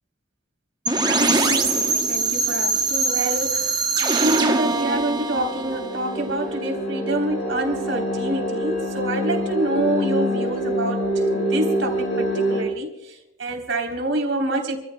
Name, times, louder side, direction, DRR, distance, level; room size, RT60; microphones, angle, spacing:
sound 1, 0.9-6.7, right 3 dB, 20° right, 0.9 m, -23 dB
voice 1, 1.0-14.8, right 1 dB, 70° right, 1 dB, 3.6 m, -27 dB
sound 2, 5.0-12.6, equal, 65° left, 4.9 m, -26 dB
28.0 x 14.0 x 2.3 m, 1.0 s
head